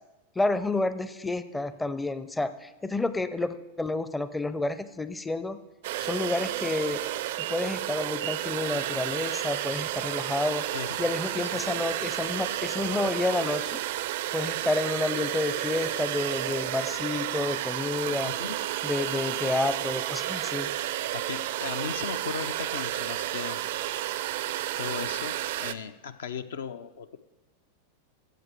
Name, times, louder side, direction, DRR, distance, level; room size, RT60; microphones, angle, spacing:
voice 1, 0.4-5.6 6.0-7.0 7.5-10.6 11.0-13.8 14.3-18.3 18.8-20.7, left 2 dB, 10° left, 12 dB, 0.5 m, -30 dB
sound 1, 5.8-25.7, right 13 dB, 55° right, 0.4 m, -31 dB
voice 2, 10.7-11.7 18.2-18.6 21.1-23.6 24.8-27.2, left 7 dB, 60° left, 11 dB, 0.5 m, -37 dB
14.0 x 7.7 x 4.6 m, 1.1 s
figure-of-eight pair, 90°, 0 cm